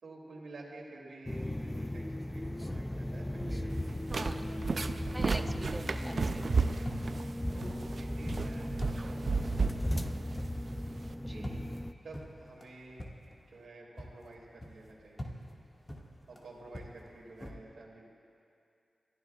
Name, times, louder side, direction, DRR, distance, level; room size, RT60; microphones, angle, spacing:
voice 1, 0.0-5.3 6.7-7.0 7.5-10.4 11.2-11.6 12.0-13.0 13.5-15.3 16.3-18.1, right 2 dB, 80° right, -3 dB, 2.6 m, -51 dB
sound 1, 1.3-11.9, left 1 dB, 15° left, 0.5 m, -37 dB
sound 2, 2.2-13.7 14.0-17.5, equal, 30° left, 1.8 m, -46 dB
sound 3, 3.7-11.1, right 4 dB, 60° right, 0.5 m, -34 dB
voice 2, 4.1-4.4 5.1-6.5 11.2-11.5, right 1 dB, 15° right, 5 dB, 1.0 m, -43 dB
29.5 x 14.0 x 2.4 m, 2.6 s
cardioid pair, 45°, 0 cm